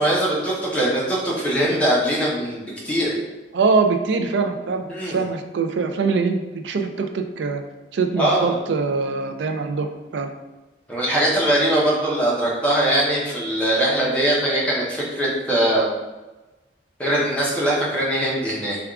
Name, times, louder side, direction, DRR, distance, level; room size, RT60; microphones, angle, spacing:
voice 1, 0.0-3.1 4.9-5.2 8.2-8.6 10.9-15.9 17.0-18.8, right 1 dB, 5° left, -6 dB, 0.7 m, -21 dB
voice 2, 3.5-7.6 7.9-9.9 10.1-10.3, right 4 dB, 75° right, 6 dB, 0.4 m, -23 dB
3.4 x 2.4 x 3.5 m, 1.1 s
head